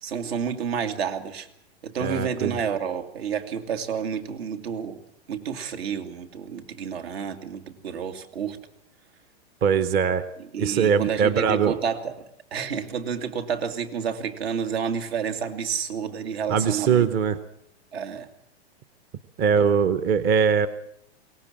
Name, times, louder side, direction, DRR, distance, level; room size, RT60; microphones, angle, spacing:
voice 1, 0.0-1.5 1.8-5.0 5.3-8.6 10.5-12.1 12.5-17.1 17.9-18.3 19.6-19.7, right 7 dB, 70° right, 8 dB, 2.7 m, -30 dB
voice 2, 2.0-2.6 9.6-10.2 10.6-11.8 16.5-17.4 19.4-20.7, right 7 dB, 30° right, 12 dB, 0.9 m, -21 dB
22.5 x 18.5 x 7.5 m, 0.71 s
hypercardioid pair, 150°, 32 cm